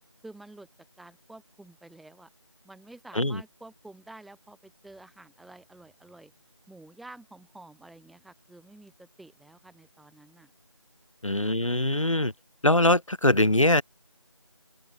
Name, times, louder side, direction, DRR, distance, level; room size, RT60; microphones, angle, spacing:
voice 1, 0.2-0.7 1.0-2.3 2.6-6.3 6.7-10.5 11.4-11.6, right 2 dB, ahead, 1.9 m, -50 dB
voice 2, 11.2-12.3 12.6-13.8, left 1 dB, 85° left, 2.6 m, -22 dB
open air
figure-of-eight pair, 175°, 16 cm